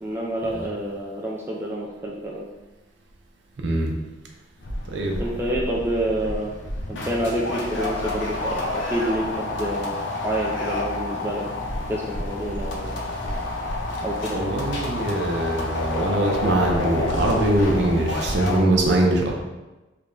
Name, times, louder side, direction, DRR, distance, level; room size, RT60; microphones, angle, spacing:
voice 1, 0.0-2.5 5.2-6.5 6.9-11.4 11.9-13.0 14.0-14.5, right 1 dB, 10° right, -3 dB, 0.3 m, -28 dB
voice 2, 3.6-3.9 4.9-5.2 14.3-19.3, right 1 dB, 65° right, 1 dB, 0.6 m, -22 dB
sound 1, 4.6-18.6, left 2 dB, 70° left, 0.6 m, -29 dB
3.4 x 2.2 x 3.8 m, 1.1 s
head